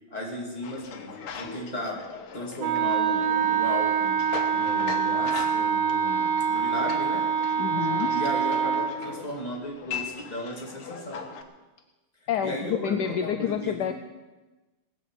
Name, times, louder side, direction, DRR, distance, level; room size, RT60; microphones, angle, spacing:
voice 1, 0.1-4.2 4.5-7.3 8.1-11.3 12.4-13.9, equal, 20° left, -2 dB, 3.0 m, -35 dB
sound 1, 0.6-11.4, left 6 dB, 85° left, 2.2 m, -40 dB
Wind instrument woodwind instrument, 2.6-9.0, right 6 dB, 60° right, 1.9 m, -25 dB
voice 2, 7.6-8.1 12.3-13.9, left 8 dB, 70° left, 8 dB, 1.1 m, -28 dB
19.0 x 7.0 x 8.6 m, 1.2 s
omnidirectional pair, 2.3 m